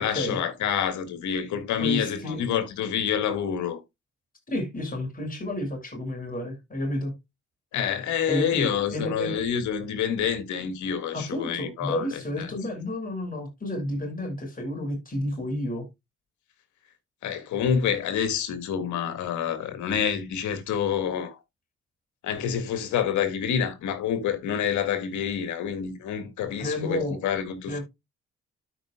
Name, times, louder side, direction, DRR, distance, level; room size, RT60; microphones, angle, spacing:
voice 1, 0.0-3.8 7.7-12.5 17.2-21.4 22.2-27.8, left 8 dB, 70° left, 2.0 m, -27 dB
voice 2, 1.8-2.4 4.5-7.1 8.3-9.4 11.1-15.9 26.6-27.2 27.7-27.8, left 1 dB, 25° left, 6.0 m, -31 dB
12.5 x 5.5 x 2.3 m
hypercardioid pair, 55°, 30 cm